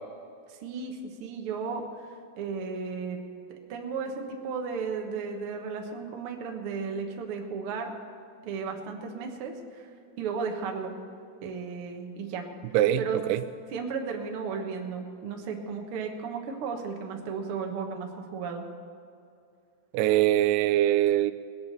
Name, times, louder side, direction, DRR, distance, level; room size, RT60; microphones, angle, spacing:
voice 1, 0.5-2.1 2.4-3.2 3.7-7.9 8.4-9.9 10.2-11.0 11.4-12.5 13.0-13.2 13.7-18.7, right 5 dB, 65° right, 2 dB, 1.3 m, -34 dB
voice 2, 12.7-13.4 19.9-21.3, right 13 dB, 85° right, 12 dB, 2.6 m, -23 dB
19.5 x 8.0 x 6.7 m, 2.4 s
omnidirectional pair, 4.5 m